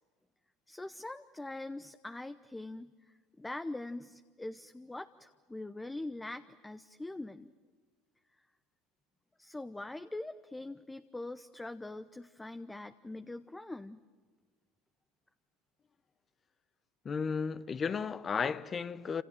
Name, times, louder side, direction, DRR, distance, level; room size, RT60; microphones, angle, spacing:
voice 1, 0.7-7.5 9.4-14.0, left 2 dB, 10° left, 0.9 m, -43 dB
voice 2, 17.0-19.2, left 6 dB, 35° left, 1.1 m, -34 dB
28.0 x 27.5 x 7.7 m
hypercardioid pair, 75°, 0 cm